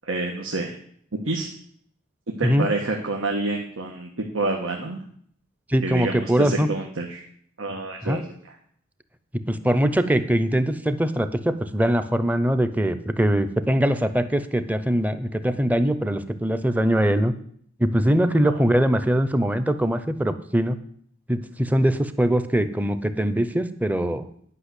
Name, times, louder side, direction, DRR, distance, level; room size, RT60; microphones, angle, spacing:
voice 1, 0.1-0.7 1.2-1.5 2.4-5.0 5.8-7.2 7.6-8.2 18.4-18.6, right 2 dB, 90° right, 1 dB, 1.4 m, -28 dB
voice 2, 5.7-6.7 8.0-8.2 9.5-17.3 17.8-20.8 21.3-24.3, equal, 10° right, 11 dB, 0.6 m, -22 dB
11.0 x 5.8 x 8.3 m, 0.62 s
head